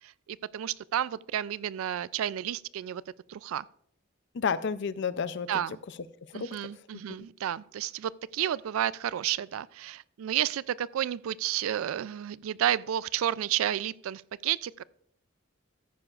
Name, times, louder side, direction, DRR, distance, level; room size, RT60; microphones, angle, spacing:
voice 1, 0.0-3.0 3.3-3.7 5.5-5.8 6.3-14.8, right 11 dB, 85° right, 0.3 m, -31 dB
voice 2, 4.3-5.5 6.3-6.6 7.2-7.3, left 6 dB, 60° left, 0.5 m, -31 dB
14.0 x 9.9 x 2.4 m
head